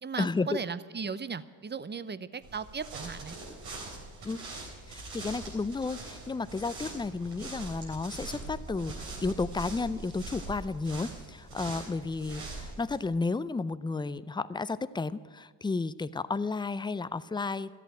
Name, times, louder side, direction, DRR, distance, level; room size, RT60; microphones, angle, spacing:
voice 1, 0.0-3.4, right 5 dB, 20° right, 15 dB, 0.7 m, -37 dB
sound 1, 2.4-13.0, right 2 dB, 85° right, 3.9 m, -42 dB
voice 2, 4.9-17.7, left 3 dB, 10° left, 16 dB, 0.4 m, -32 dB
13.5 x 8.4 x 9.0 m, 1.5 s
supercardioid pair, 55°, 48 cm